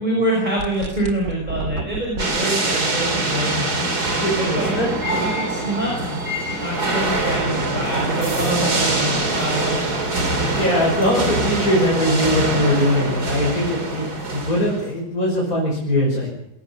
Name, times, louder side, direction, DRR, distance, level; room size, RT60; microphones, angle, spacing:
voice 1, 0.0-4.8 5.1-6.2 6.6-9.9, right 1 dB, 25° right, -2 dB, 5.6 m, -26 dB
sound 1, 0.6-2.3, right 3 dB, 80° right, 2.8 m, -30 dB
sound 2, 2.2-14.9, right 2 dB, 60° right, 3.7 m, -23 dB
voice 2, 4.0-4.9 10.5-14.0 14.3-16.3, left 1 dB, 55° left, -2 dB, 6.1 m, -21 dB
21.5 x 18.5 x 7.2 m, 0.82 s
omnidirectional pair, 1.9 m